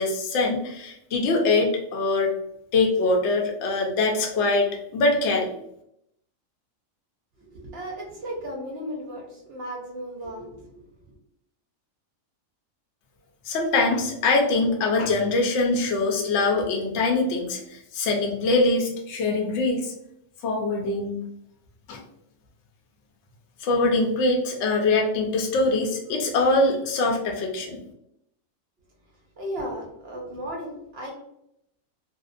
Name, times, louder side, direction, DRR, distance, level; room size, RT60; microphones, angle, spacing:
voice 1, 0.0-2.3 2.7-5.5 13.5-19.9 20.4-21.2 21.9-22.0 23.6-27.8, left 2 dB, 65° left, 1 dB, 0.8 m, -23 dB
voice 2, 7.4-10.7 29.4-31.1, equal, 60° right, -1 dB, 0.7 m, -35 dB
2.5 x 2.1 x 2.4 m, 0.77 s
omnidirectional pair, 1.4 m